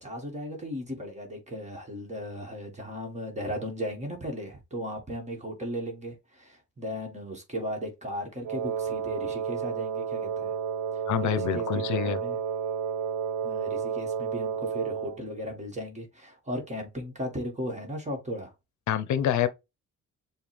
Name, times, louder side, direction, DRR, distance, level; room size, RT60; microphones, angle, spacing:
voice 1, 0.0-10.6 10.9-12.4 13.4-18.5, equal, 25° right, 1.7 m, -36 dB
Wind instrument woodwind instrument, 8.4-15.2, right 7 dB, 70° right, 0.5 m, -31 dB
voice 2, 11.1-12.2 18.9-19.5, left 9 dB, 70° left, 0.7 m, -26 dB
6.8 x 2.4 x 3.3 m
cardioid pair, 90°, 30 cm